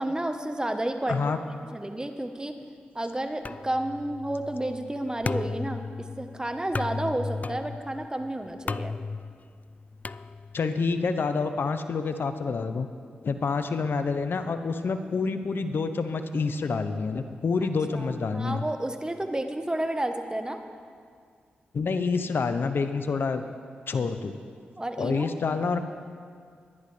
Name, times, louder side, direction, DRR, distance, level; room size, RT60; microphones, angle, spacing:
voice 1, 0.0-1.2 1.7-2.5 2.9-8.9 17.9-20.6 24.8-25.3, right 1 dB, 20° right, 6 dB, 1.1 m, -31 dB
sound 1, 3.4-10.8, left 4 dB, 40° left, 0.3 m, -36 dB
voice 2, 10.5-12.9 13.2-18.6 21.7-23.4 23.9-24.4 25.0-25.8, left 4 dB, 60° left, 9 dB, 0.8 m, -27 dB
21.5 x 10.5 x 3.3 m, 2.1 s
supercardioid pair, 40°, 4 cm